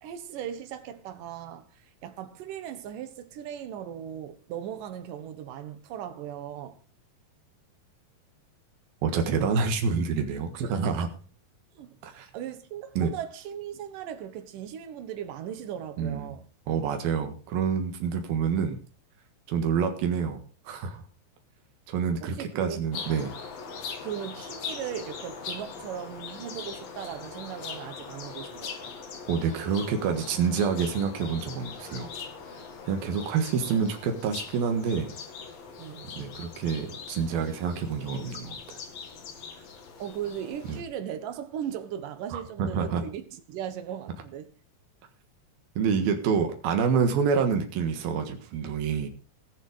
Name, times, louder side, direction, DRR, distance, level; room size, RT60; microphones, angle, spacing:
voice 1, 0.0-6.8 11.8-16.5 22.2-22.9 24.0-28.9 35.8-36.1 40.0-44.5, right 9 dB, 70° right, 2.9 m, -38 dB
voice 2, 9.0-11.1 12.0-12.3 13.0-13.1 16.0-16.3 16.7-18.8 19.5-20.4 20.6-21.0 21.9-23.3 29.3-32.1 32.9-35.1 36.2-38.8 40.7-40.8 42.3-43.0 45.8-49.1, right 6 dB, 90° right, 3.4 m, -27 dB
sound 1, 22.9-40.8, left 5 dB, 75° left, 4.0 m, -41 dB
20.5 x 7.3 x 4.9 m
omnidirectional pair, 4.1 m